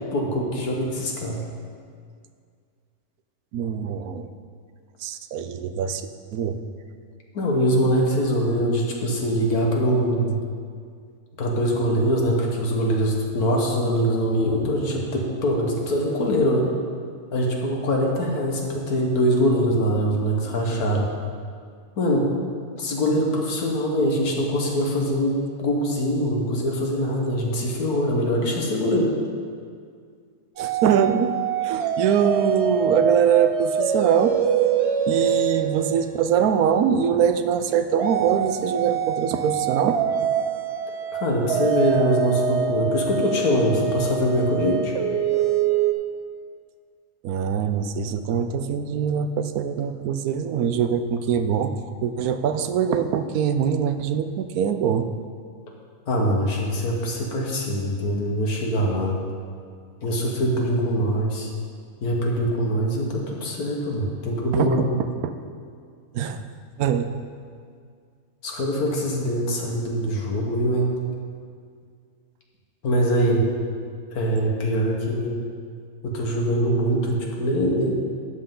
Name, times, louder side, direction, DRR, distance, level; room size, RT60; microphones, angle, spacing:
voice 1, 0.0-1.4 7.3-10.4 11.4-16.7 17.3-21.1 22.0-22.3 22.8-29.1 41.1-44.9 56.1-59.2 60.0-61.5 62.0-64.9 68.4-70.9 72.8-73.5 74.1-75.3 76.0-78.0, equal, 80° left, -1 dB, 1.9 m, -23 dB
voice 2, 3.5-4.3 5.0-6.6 30.6-31.3 31.6-34.4 35.1-40.3 47.2-51.7 52.0-55.1 64.5-64.9 66.1-66.4 66.8-67.1, right 8 dB, 80° right, 9 dB, 1.1 m, -23 dB
sound 1, 30.6-36.8 38.0-45.9, right 7 dB, 60° right, 0.8 m, -25 dB
12.5 x 7.9 x 3.8 m, 2.1 s
omnidirectional pair, 1.6 m